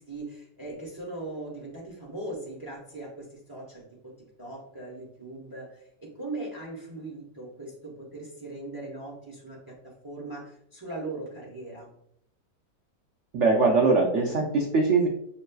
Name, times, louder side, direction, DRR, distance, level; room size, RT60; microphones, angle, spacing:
voice 1, 0.0-4.1 4.4-11.9, right 2 dB, 25° right, -4 dB, 0.5 m, -39 dB
voice 2, 13.3-15.1, right 3 dB, 90° right, 1 dB, 0.6 m, -22 dB
5.3 x 3.1 x 2.2 m, 0.70 s
omnidirectional pair, 1.9 m